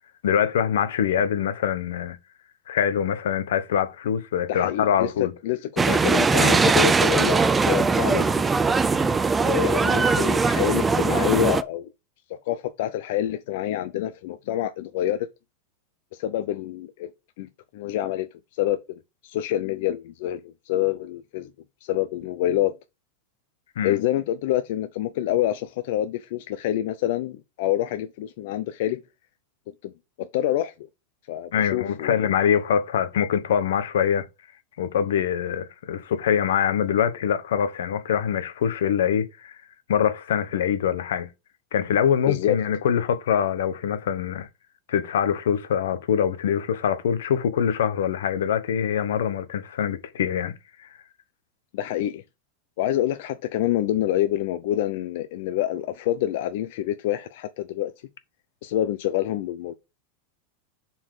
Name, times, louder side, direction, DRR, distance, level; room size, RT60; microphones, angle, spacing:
voice 1, 0.2-2.2 2.7-5.3 6.4-6.6 23.8-24.0 31.5-34.3 34.8-39.6 39.9-41.3 41.7-44.5 44.9-50.9, left 8 dB, 85° left, 1.2 m, -24 dB
voice 2, 4.5-8.5 9.4-11.9 12.3-15.3 16.1-17.1 17.4-21.5 21.8-22.7 23.8-29.0 29.8-29.9 30.2-30.7 31.3-32.3 42.3-42.6 51.7-52.2 52.8-57.9 58.6-59.7, left 12 dB, 65° left, 0.7 m, -27 dB
sound 1, 5.8-11.6, right 4 dB, 15° right, 0.6 m, -20 dB
7.2 x 4.6 x 4.9 m
supercardioid pair, 135°, 0 cm